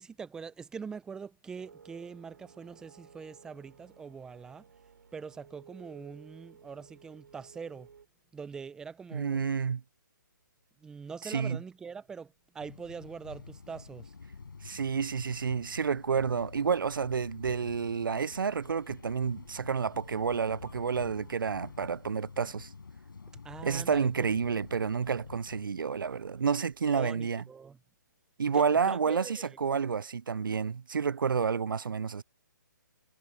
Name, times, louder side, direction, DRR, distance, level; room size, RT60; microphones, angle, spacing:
voice 1, 0.0-4.7 5.1-7.9 8.3-9.4 10.8-14.1 23.4-24.3 26.9-27.8 28.5-29.6, right 5 dB, 5° right, 0.6 m, -43 dB
sound 1, 1.6-8.1, right 6 dB, 70° right, 3.3 m, -56 dB
voice 2, 9.1-9.8 11.3-11.6 14.6-22.7 23.6-27.4 28.4-32.2, right 6 dB, 90° right, 0.4 m, -30 dB
sound 2, 12.6-25.7, left 4 dB, 80° left, 6.4 m, -48 dB
sound 3, 18.2-22.6 23.5-27.1, right 8 dB, 55° right, 6.4 m, -60 dB
hypercardioid pair, 150°, 11 cm